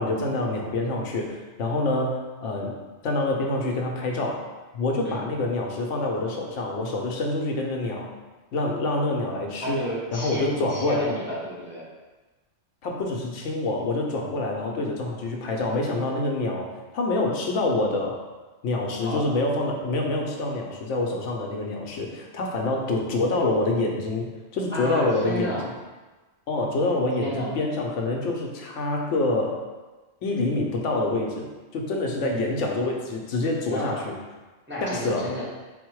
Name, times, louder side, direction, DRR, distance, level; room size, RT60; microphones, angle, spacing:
voice 1, 0.0-2.7 3.0-4.4 4.7-8.1 8.5-9.8 10.1-11.1 12.8-18.2 18.6-25.5 26.5-29.6 30.2-31.5 31.7-34.2 34.8-35.3, left 2 dB, 85° left, 0 dB, 1.0 m, -26 dB
voice 2, 9.6-11.9 19.0-19.3 24.7-25.7 27.2-27.5 32.2-32.4 33.7-34.0 34.7-35.4, equal, 10° right, -7 dB, 0.6 m, -32 dB
4.2 x 2.1 x 4.5 m, 1.2 s
omnidirectional pair, 1.2 m